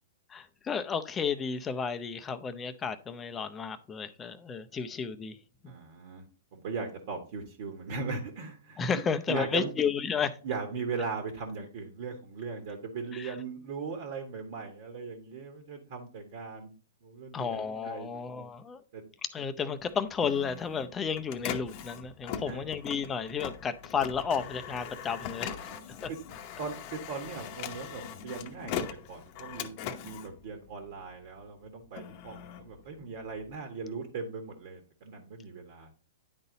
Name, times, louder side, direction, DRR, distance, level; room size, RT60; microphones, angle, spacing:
voice 1, 0.3-5.4 5.6-5.7 8.8-10.4 13.1-13.3 17.3-18.8 19.3-25.6 25.9-26.1, left 6 dB, 20° left, 0.6 m, -32 dB
voice 2, 5.7-6.2 6.5-8.8 9.3-9.7 10.4-16.7 17.0-18.4 18.9-19.0 22.5-22.7 25.4-25.8 26.1-26.2 26.6-28.8 29.1-29.7 30.0-35.9, right 5 dB, 55° right, 1.5 m, -39 dB
Printer, 19.8-31.2 31.7-33.5, left 8 dB, 45° left, 0.9 m, -41 dB
9.8 x 4.0 x 4.0 m
hypercardioid pair, 125°, 0 cm